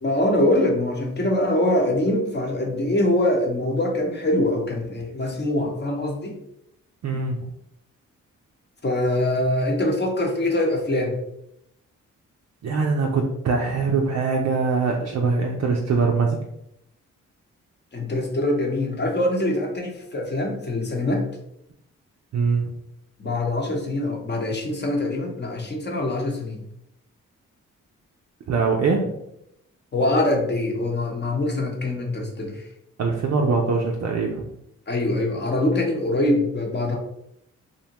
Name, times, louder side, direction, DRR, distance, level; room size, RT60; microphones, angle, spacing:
voice 1, 0.0-6.3 8.8-11.2 17.9-21.2 23.2-26.6 29.9-32.6 34.9-37.0, left 1 dB, 30° left, 0 dB, 0.8 m, -23 dB
voice 2, 7.0-7.4 12.6-16.4 22.3-22.7 28.5-29.1 33.0-34.4, right 4 dB, 50° right, 0 dB, 0.5 m, -22 dB
2.6 x 2.1 x 2.9 m, 0.78 s
supercardioid pair, 50°, 33 cm